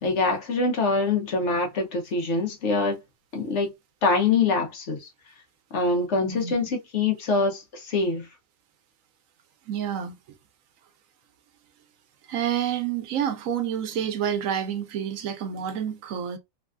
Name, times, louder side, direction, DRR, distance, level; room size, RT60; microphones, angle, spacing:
voice 1, 0.0-3.0 3.3-3.7 4.0-5.1 5.7-8.3, left 3 dB, 65° left, 1.2 m, -24 dB
voice 2, 6.2-6.5 9.7-10.1 12.3-16.4, right 9 dB, 85° right, 1.1 m, -28 dB
3.2 x 2.3 x 2.4 m
omnidirectional pair, 1.4 m